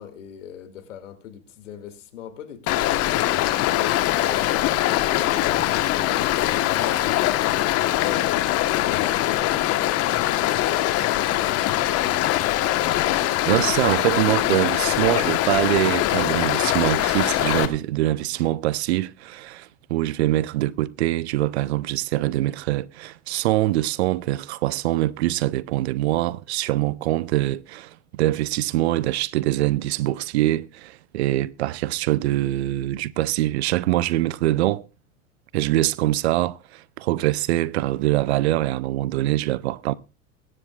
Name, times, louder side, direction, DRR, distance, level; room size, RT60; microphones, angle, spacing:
voice 1, 0.0-7.6 8.0-13.0, left 9 dB, 65° left, 2.5 m, -40 dB
Stream, 2.7-17.7, left 14 dB, 35° left, 1.3 m, -22 dB
voice 2, 13.5-34.8 35.5-39.9, right 15 dB, 55° right, 0.6 m, -24 dB
23.5 x 9.9 x 2.4 m
figure-of-eight pair, 90°, 39 cm